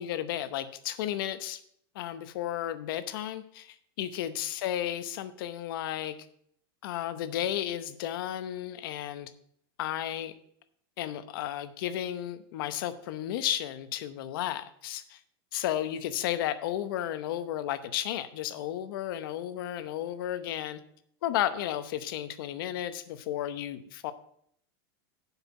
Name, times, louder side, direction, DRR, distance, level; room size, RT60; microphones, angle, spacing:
voice 1, 0.0-1.6 1.9-6.2 6.8-9.3 9.8-10.3 11.0-15.2 15.5-20.8 21.2-24.1, left 12 dB, 65° left, 12 dB, 0.8 m, -33 dB
8.0 x 5.7 x 7.0 m, 0.67 s
supercardioid pair, 160°, 13 cm